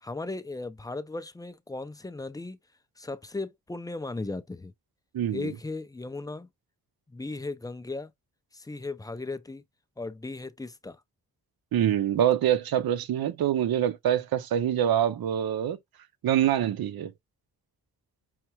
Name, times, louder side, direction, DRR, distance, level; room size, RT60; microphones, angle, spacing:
voice 1, 0.0-2.6 3.0-4.7 5.3-6.5 7.1-8.1 8.5-9.6 10.0-11.0, left 3 dB, 10° left, 0.4 m, -36 dB
voice 2, 5.1-5.5 11.7-15.8 16.2-17.1, right 10 dB, 75° right, 0.6 m, -25 dB
5.7 x 2.1 x 2.9 m
wide cardioid pair, 130°, 37 cm